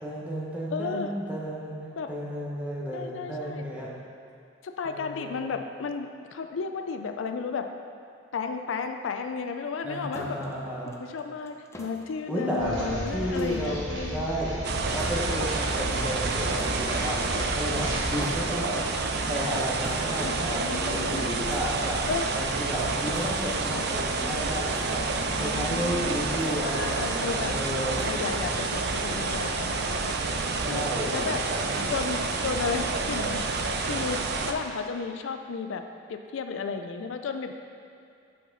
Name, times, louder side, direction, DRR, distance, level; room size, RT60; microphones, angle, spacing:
voice 1, 0.0-3.9 4.8-5.4 9.8-10.9 12.3-14.7 14.9-18.9 19.2-22.1 22.3-25.1 25.4-28.1 30.5-31.9, equal, 10° right, -6 dB, 1.2 m, -33 dB
voice 2, 0.7-1.1 2.0-2.1 2.9-3.7 4.6-7.7 8.3-10.4 10.8-14.3 18.1-18.6 20.2-21.4 22.1-22.3 23.5-23.9 25.3-27.6 28.0-30.2 30.6-30.8 31.1-31.4 31.9-33.4 33.8-35.8 36.1-37.5, left 5 dB, 80° left, 7 dB, 0.4 m, -34 dB
sound 1, 10.1-29.5, left 1 dB, 15° left, 0.6 m, -47 dB
sound 2, 12.6-18.3, right 1 dB, 75° right, 1.7 m, -35 dB
sound 3, 14.6-34.5, right 3 dB, 55° right, 0.5 m, -29 dB
8.5 x 5.8 x 4.0 m, 2.5 s
head